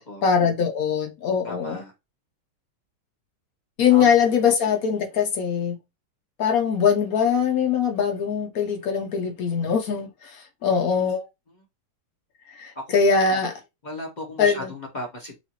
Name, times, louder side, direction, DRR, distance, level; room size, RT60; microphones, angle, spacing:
voice 1, 0.2-1.8 3.8-5.8 6.4-11.3 12.5-13.5 14.4-14.7, left 6 dB, 65° left, 0.9 m, -22 dB
voice 2, 1.4-1.9 3.9-4.1 4.6-4.7 11.5-11.7 12.7-12.8 13.8-15.4, left 1 dB, 40° left, 0.6 m, -36 dB
5.6 x 2.5 x 2.9 m
omnidirectional pair, 2.2 m